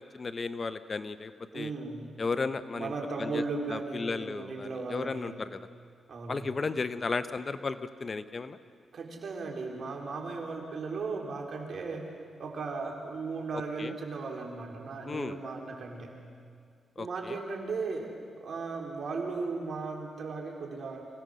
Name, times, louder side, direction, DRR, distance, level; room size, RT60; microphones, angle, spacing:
voice 1, 0.1-1.7 2.2-2.9 3.2-3.4 3.7-5.6 6.3-8.6 13.8-13.9 15.0-15.4 17.0-17.4, left 4 dB, 40° left, 12 dB, 0.8 m, -34 dB
voice 2, 1.5-2.2 2.7-5.4 6.1-6.5 8.9-12.1 12.4-16.2 17.0-21.1, right 4 dB, 60° right, 0 dB, 3.7 m, -36 dB
25.0 x 17.0 x 6.4 m, 2.2 s
cardioid pair, 70°, 0 cm